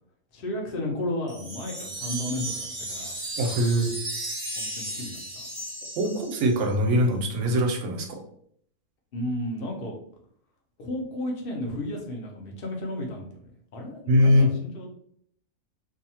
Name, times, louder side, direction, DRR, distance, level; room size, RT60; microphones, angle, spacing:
voice 1, 0.3-3.2 4.6-5.4 9.1-9.9 10.8-14.9, left 1 dB, 50° left, 0 dB, 0.7 m, -33 dB
sound 1, 1.3-6.6, right 1 dB, 40° right, 0.3 m, -35 dB
voice 2, 3.4-3.9 6.0-8.2 14.1-14.5, equal, 85° right, 4 dB, 1.1 m, -22 dB
2.7 x 2.3 x 2.8 m, 0.65 s
omnidirectional pair, 1.6 m